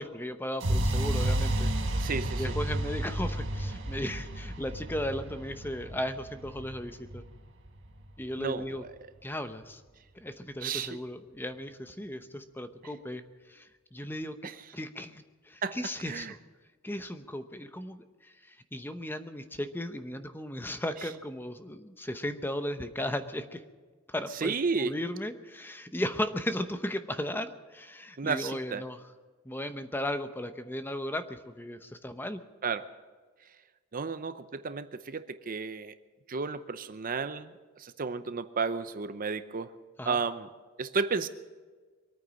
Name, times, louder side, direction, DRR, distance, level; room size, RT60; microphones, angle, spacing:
voice 1, 0.0-1.7 2.4-7.2 8.2-8.8 9.2-9.8 10.2-13.2 13.5-16.4 16.8-23.6 24.1-24.5 24.8-29.0 29.4-32.4 40.0-40.2, left 1 dB, 10° left, 9 dB, 0.8 m, -36 dB
sound 1, 0.6-8.5, right 1 dB, 65° right, 1.7 m, -32 dB
voice 2, 2.0-2.5 8.4-8.9 10.6-11.0 14.4-14.6 15.6-15.8 16.0-16.3 24.3-25.0 28.2-28.8 32.6-32.9 33.9-35.9 36.3-39.7 40.1-40.5 40.8-41.3, right 4 dB, 45° right, 12 dB, 0.7 m, -32 dB
24.0 x 9.3 x 6.3 m, 1.4 s
head